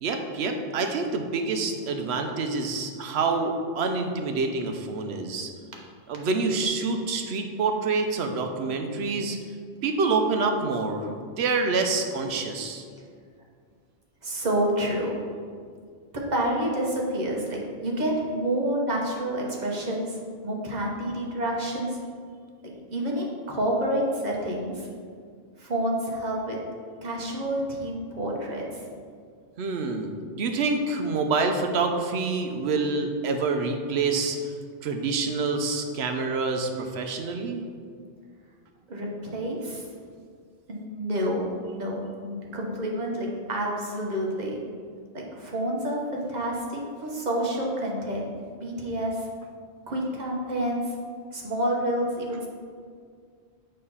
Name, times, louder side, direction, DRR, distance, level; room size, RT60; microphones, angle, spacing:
voice 1, 0.0-5.5 6.1-9.4 9.8-12.8 29.6-30.1 30.4-34.5 34.8-37.6, right 4 dB, 75° right, 4 dB, 0.9 m, -27 dB
voice 2, 14.2-15.2 16.1-20.2 20.4-22.0 22.9-24.9 25.6-26.6 27.0-28.8 38.9-39.8 40.7-41.4 41.7-44.6 45.1-48.3 48.6-49.3 49.9-50.9 51.3-52.5, right 1 dB, 45° right, -2 dB, 1.1 m, -28 dB
6.6 x 3.2 x 5.5 m, 2.1 s
omnidirectional pair, 1.1 m